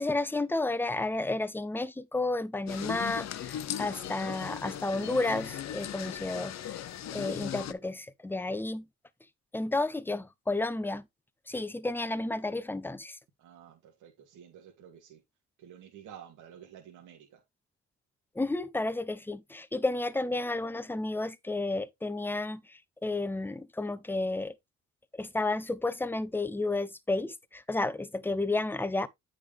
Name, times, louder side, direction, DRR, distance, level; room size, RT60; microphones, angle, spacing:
voice 1, 0.0-6.8 7.1-8.8 9.5-11.0 11.5-13.2 18.3-24.5 25.1-29.1, left 2 dB, 5° left, 0.7 m, -32 dB
sound 1, 2.7-7.7, left 10 dB, 60° left, 0.8 m, -38 dB
voice 2, 13.4-15.2 15.6-17.4, right 9 dB, 80° right, 2.2 m, -51 dB
8.6 x 5.1 x 3.4 m
cardioid pair, 90°, 30 cm